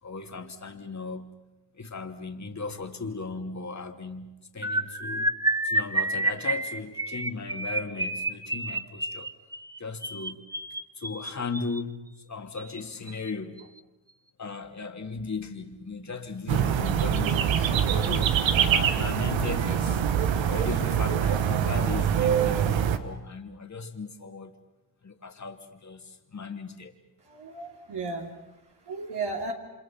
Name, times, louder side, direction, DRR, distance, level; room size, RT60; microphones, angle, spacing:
voice 1, 0.0-1.4 1.8-5.3 5.6-9.3 9.8-10.5 10.9-13.7 14.4-20.0 20.4-24.5 25.0-27.0, left 4 dB, 40° left, 5 dB, 2.7 m, -37 dB
sound 1, 4.6-11.8 12.6-12.8 13.1-13.3 13.6-13.8, right 2 dB, 10° right, 1.1 m, -30 dB
sound 2, 16.5-23.0, right 9 dB, 85° right, 1.4 m, -24 dB
voice 2, 27.2-29.5, right 3 dB, 60° right, 0 dB, 3.4 m, -35 dB
29.5 x 26.0 x 5.9 m, 1.0 s
cardioid pair, 65°, 44 cm